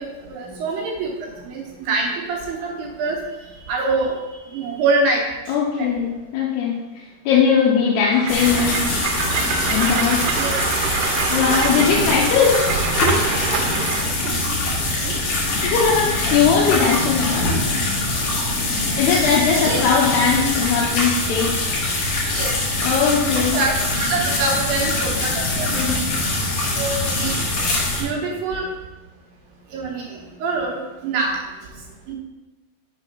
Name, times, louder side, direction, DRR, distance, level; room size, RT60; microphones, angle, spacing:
voice 1, 0.0-3.2 3.7-5.2 5.8-5.9 10.3-10.6 10.9-11.0 14.2-14.4 15.0-15.2 19.0-19.8 22.3-22.5 23.0-25.9 26.8-27.5 27.9-28.7 29.7-31.4 32.1-32.2, right 3 dB, 70° right, -2 dB, 2.6 m, -25 dB
voice 2, 5.5-8.8 9.7-10.3 11.3-12.5 15.6-17.6 19.0-21.7 22.8-23.6 25.7-26.1, left 6 dB, 85° left, -4 dB, 2.9 m, -19 dB
Train, 8.1-14.2, right 6 dB, 90° right, 2.7 m, -26 dB
sound 1, 8.3-28.0, left 2 dB, 60° left, 2.6 m, -23 dB
6.5 x 4.2 x 5.3 m, 1.1 s
omnidirectional pair, 4.6 m